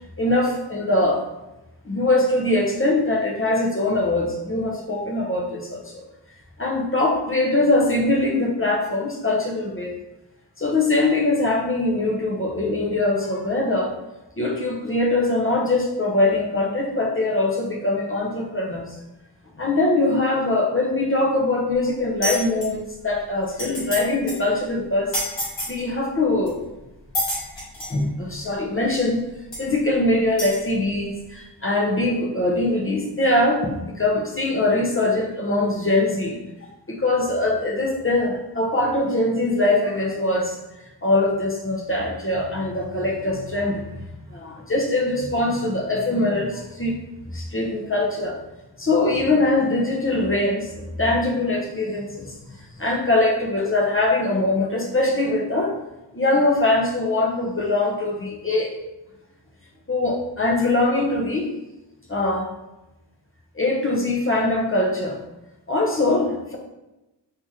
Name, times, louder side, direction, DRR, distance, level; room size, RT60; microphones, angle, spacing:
voice 1, 0.2-1.2 1.8-6.0 6.6-9.9 10.6-13.9 14.4-19.0 19.6-25.1 25.7-26.5 27.9-29.2 29.6-40.6 41.0-43.8 44.3-47.0 47.3-48.4 48.8-55.7 56.1-58.7 59.9-61.5 62.1-62.5 63.5-65.2 65.7-66.6, left 2 dB, 30° left, -1 dB, 0.7 m, -22 dB
sound 1, 22.2-22.7 23.2-23.3 23.5-24.0 24.3-24.4 25.1-25.7 26.5-26.6 27.1-28.0 28.9-29.0 29.5-29.6 30.4-30.6, equal, 90° left, 1.2 m, -27 dB
2.9 x 2.9 x 3.6 m, 0.99 s
wide cardioid pair, 40°, 43 cm